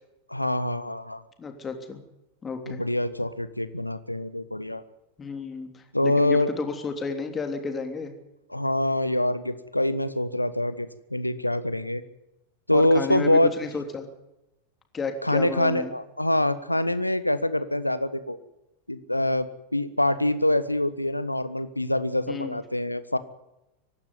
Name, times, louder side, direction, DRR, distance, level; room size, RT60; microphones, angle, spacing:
voice 1, 0.3-1.2 2.7-4.8 5.9-6.5 8.5-12.0 12.7-13.5 15.2-18.4 18.9-23.2, left 1 dB, 85° left, 14 dB, 1.3 m, -25 dB
voice 2, 1.4-2.0 2.4-2.8 5.2-8.1 12.7-14.1 14.9-15.9 22.3-22.6, left 4 dB, 20° left, 5 dB, 3.2 m, -32 dB
24.0 x 12.0 x 9.5 m, 0.91 s
figure-of-eight pair, 90°, 0 cm